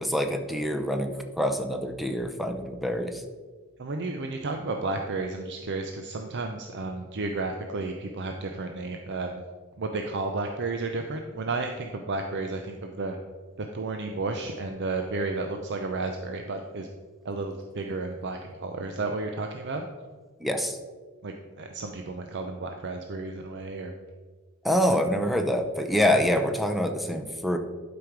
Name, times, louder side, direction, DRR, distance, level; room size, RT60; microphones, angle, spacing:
voice 1, 0.0-3.2 20.4-20.8 24.6-27.6, equal, ahead, 6 dB, 0.7 m, -26 dB
voice 2, 3.8-9.4 9.8-13.2 13.6-16.9 17.2-19.9 21.2-23.9, right 3 dB, 55° right, 4 dB, 0.6 m, -32 dB
11.5 x 5.2 x 4.6 m, 1.4 s
head